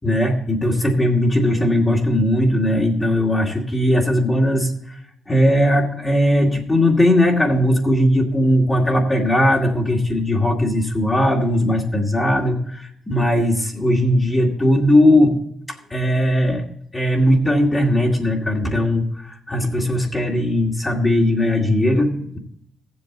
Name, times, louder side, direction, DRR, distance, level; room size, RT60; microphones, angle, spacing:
voice 1, 0.0-5.0 5.3-15.4 15.7-16.7 16.9-22.4, left 1 dB, 20° left, -2 dB, 2.1 m, -18 dB
15.0 x 7.9 x 3.8 m, 0.72 s
cardioid pair, 90°, 0 cm